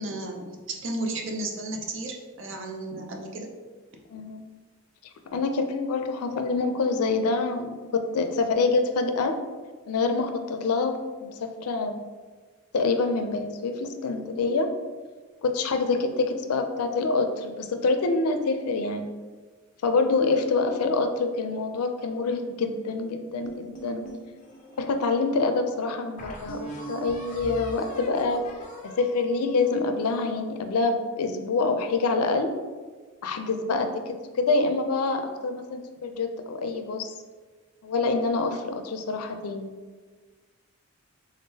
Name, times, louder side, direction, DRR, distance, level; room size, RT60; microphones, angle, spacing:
voice 1, 0.0-3.5, right 2 dB, 55° right, 2 dB, 0.5 m, -33 dB
voice 2, 4.1-4.4 5.3-9.4 9.9-12.0 12.7-14.7 15.4-19.1 19.8-24.1 24.8-28.4 28.8-32.5 33.2-37.1 37.8-39.7, left 3 dB, 90° left, 7 dB, 0.4 m, -26 dB
sound 1, 23.4-25.0 25.6-25.7 26.2-30.4, right 1 dB, 35° left, 0.5 m, -41 dB
3.6 x 3.6 x 2.7 m, 1.4 s
head